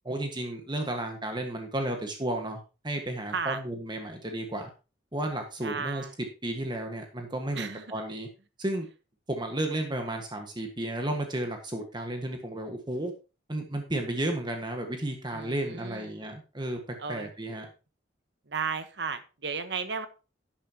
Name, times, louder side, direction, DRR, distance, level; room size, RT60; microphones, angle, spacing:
voice 1, 0.0-4.7 5.1-6.0 6.4-8.3 8.6-8.9 9.3-13.1 13.5-16.8 17.1-17.6, right 1 dB, 25° right, 4 dB, 1.6 m, -33 dB
voice 2, 5.6-6.1 7.5-7.8 15.3-16.1 17.0-17.7 18.5-20.1, right 5 dB, 65° right, 10 dB, 1.2 m, -34 dB
12.0 x 8.7 x 2.9 m, 0.31 s
head